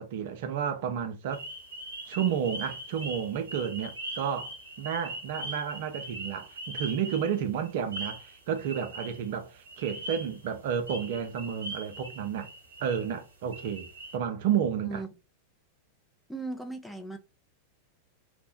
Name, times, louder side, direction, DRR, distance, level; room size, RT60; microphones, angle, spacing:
voice 1, 0.0-1.4 2.1-12.5 12.8-13.9 14.1-15.0, right 8 dB, 55° right, 0.5 m, -31 dB
sound 1, 1.3-9.3 9.7-10.5 10.9-13.2 13.5-14.2, right 1 dB, 75° right, 1.0 m, -41 dB
voice 2, 16.3-17.2, right 3 dB, 5° left, 0.5 m, -37 dB
2.6 x 2.1 x 3.5 m
figure-of-eight pair, 90°, 0 cm